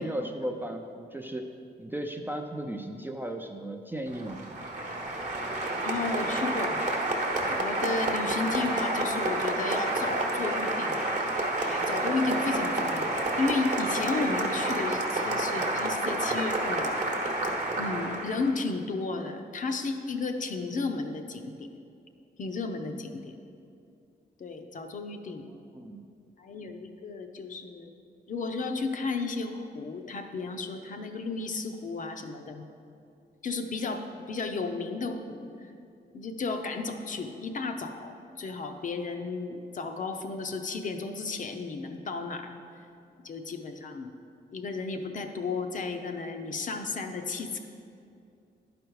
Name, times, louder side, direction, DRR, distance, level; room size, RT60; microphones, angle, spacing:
voice 1, 0.0-1.5 1.8-4.4 25.5-26.0, right 1 dB, 10° right, 4 dB, 0.4 m, -36 dB
Applause, 4.1-18.5, right 2 dB, 45° right, 1.0 m, -29 dB
voice 2, 5.8-6.8 7.5-11.0 11.6-17.3 17.8-21.7 22.4-23.3 24.4-25.4 26.4-27.9 28.3-32.6 33.4-35.7 36.1-42.6 43.2-44.1 44.5-47.6, left 3 dB, 45° left, 6 dB, 0.6 m, -33 dB
11.5 x 5.1 x 4.6 m, 2.5 s
wide cardioid pair, 150°, 18 cm